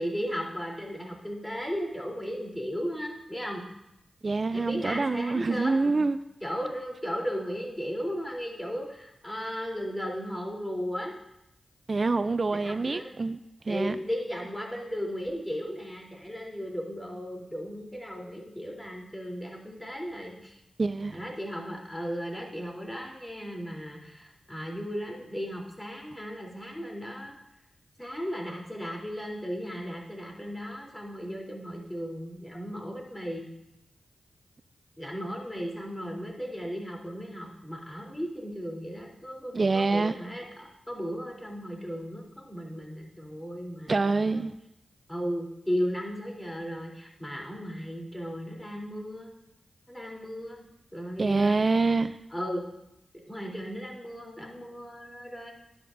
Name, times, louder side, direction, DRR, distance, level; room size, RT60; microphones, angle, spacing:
voice 1, 0.0-3.6 4.5-6.0 6.4-11.2 12.5-13.1 13.7-20.6 21.1-27.3 28.0-33.5 35.0-44.5 45.1-49.3 49.9-50.6 50.9-51.6 52.3-52.6 53.1-55.5, equal, 15° left, 3.4 m, -35 dB
voice 2, 4.2-6.2 11.9-13.4 13.6-14.0 20.8-21.2 39.5-40.1 43.9-44.5 51.2-52.2, right 3 dB, 50° right, 0.4 m, -26 dB
12.5 x 10.0 x 2.6 m
cardioid pair, 40°, 0 cm